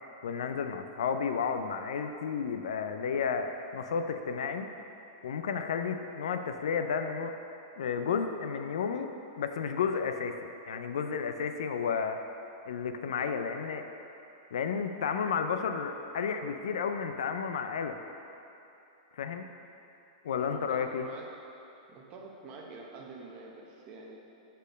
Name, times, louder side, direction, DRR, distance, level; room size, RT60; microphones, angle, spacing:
voice 1, 0.2-4.7 5.2-7.3 7.8-12.2 12.7-13.9 14.5-18.0 19.1-19.5 20.2-21.1, left 6 dB, 85° left, 7 dB, 0.4 m, -32 dB
voice 2, 20.4-21.3 21.9-24.2, right 3 dB, 35° right, -1 dB, 0.9 m, -47 dB
5.1 x 4.4 x 5.1 m, 2.8 s
hypercardioid pair, 135°, 3 cm